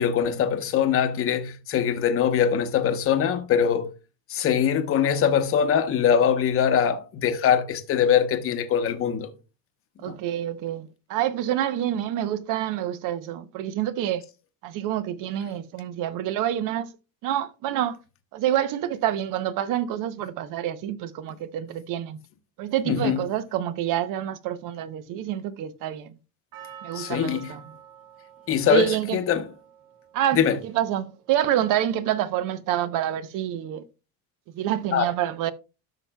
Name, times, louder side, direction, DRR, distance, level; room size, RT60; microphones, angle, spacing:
voice 1, 0.0-3.9 4.3-9.3 10.0-10.1 22.9-23.2 26.9-27.5 28.5-29.5 30.3-30.6 34.9-35.1, left 8 dB, 35° left, 0.9 m, -22 dB
voice 2, 10.0-14.2 14.6-16.9 17.2-18.0 18.3-22.2 22.6-26.1 26.8-27.6 28.7-29.2 30.1-33.8 34.5-35.5, right 11 dB, 50° right, 0.7 m, -27 dB
Percussion, 26.5-30.9 31.5-31.6, right 8 dB, 80° right, 2.4 m, -47 dB
13.0 x 5.8 x 2.2 m
cardioid pair, 160°, 40 cm